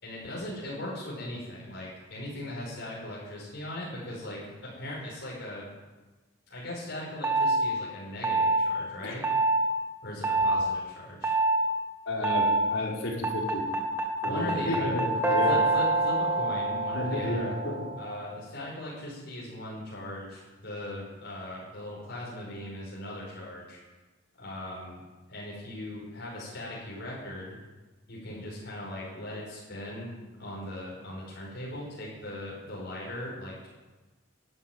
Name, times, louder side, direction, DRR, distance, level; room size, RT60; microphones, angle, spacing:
voice 1, 0.0-5.7 6.5-9.2 10.0-11.4 14.2-15.0 15.5-17.5 18.0-23.8 24.3-25.0 25.3-27.6 28.1-30.1 30.4-33.7, left 1 dB, 55° left, -5 dB, 5.3 m, -39 dB
sound 1, 7.2-7.6 8.2-8.6 9.2-9.6 10.2-10.6 11.2-11.6 12.2-12.6 13.2-18.3, right 2 dB, 10° right, 1.7 m, -26 dB
voice 2, 12.1-13.6 14.2-15.6 16.9-17.9, left 1 dB, 80° left, -3 dB, 4.8 m, -31 dB
12.5 x 12.5 x 9.4 m, 1.2 s
head